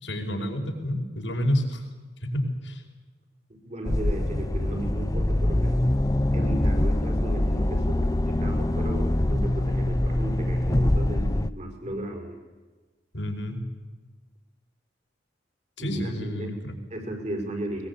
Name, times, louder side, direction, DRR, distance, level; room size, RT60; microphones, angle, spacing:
voice 1, 0.0-1.8 2.2-2.8 13.1-13.7 15.8-16.8, equal, 80° left, 1 dB, 5.1 m, -29 dB
voice 2, 3.5-5.9 6.3-12.4 15.8-16.5 16.9-17.9, right 1 dB, 40° right, 4 dB, 5.4 m, -35 dB
sound 1, 3.9-11.5, left 1 dB, 20° left, 0.6 m, -24 dB
22.0 x 21.5 x 8.4 m, 1.3 s
head